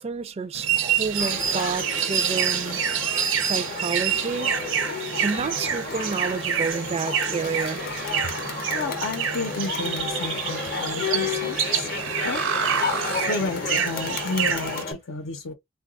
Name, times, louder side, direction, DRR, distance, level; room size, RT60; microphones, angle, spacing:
voice 1, 0.0-2.8 3.4-4.5 5.2-7.8, right 5 dB, 30° right, 0.3 m, -30 dB
sound 1, 0.5-14.8, right 8 dB, 70° right, 0.6 m, -28 dB
sound 2, 1.0-13.4, right 5 dB, 85° right, 1.0 m, -36 dB
Crowd, 1.2-14.9, left 5 dB, 45° left, 0.6 m, -32 dB
voice 2, 8.7-11.9 12.2-12.6 13.3-15.5, left 3 dB, 85° left, 0.7 m, -31 dB
3.8 x 2.3 x 2.3 m
head